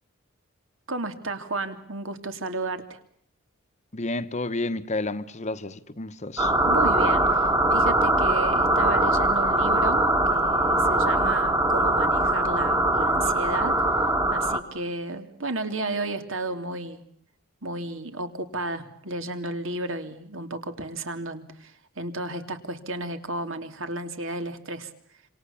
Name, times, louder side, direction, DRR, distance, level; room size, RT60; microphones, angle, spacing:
voice 1, 0.9-3.0 6.6-10.0 10.3-13.9 14.3-17.0 17.6-24.9, right 2 dB, 65° right, 3.0 m, -33 dB
voice 2, 3.9-6.5, left 2 dB, 35° left, 1.1 m, -31 dB
sound 1, 6.4-14.6, right 1 dB, 15° right, 1.8 m, -22 dB
28.0 x 26.5 x 7.3 m
head